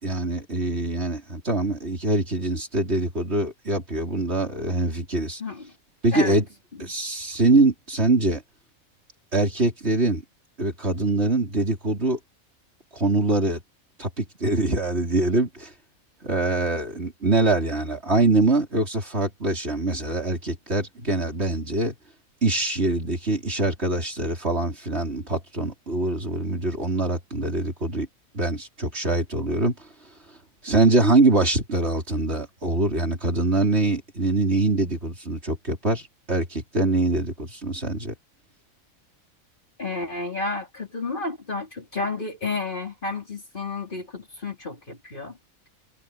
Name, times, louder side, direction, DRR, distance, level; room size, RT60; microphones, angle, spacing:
voice 1, 0.0-5.4 6.0-6.5 6.8-8.4 9.3-10.2 10.6-12.2 12.9-13.6 14.0-15.7 16.2-21.9 22.4-28.1 28.3-29.7 30.6-38.1, right 2 dB, 50° right, 5.2 m, -23 dB
voice 2, 5.4-5.7 6.1-6.4 39.8-45.4, left 3 dB, 35° left, 3.4 m, -31 dB
omnidirectional pair, 1.4 m